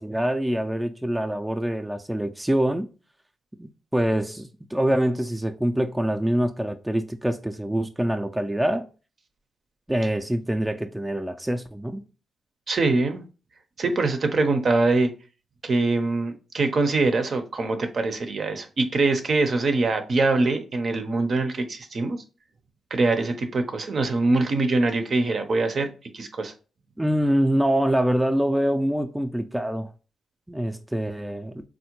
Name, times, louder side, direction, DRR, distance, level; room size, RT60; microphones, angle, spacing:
voice 1, 0.0-2.9 3.6-8.9 9.9-12.0 27.0-29.9 30.5-31.5, right 1 dB, 10° right, 0.3 m, -25 dB
voice 2, 12.7-13.2 13.8-15.1 15.6-22.2 22.9-25.9 26.1-26.5, right 3 dB, 55° right, 0.6 m, -23 dB
3.5 x 2.1 x 2.9 m
supercardioid pair, 55°, 0 cm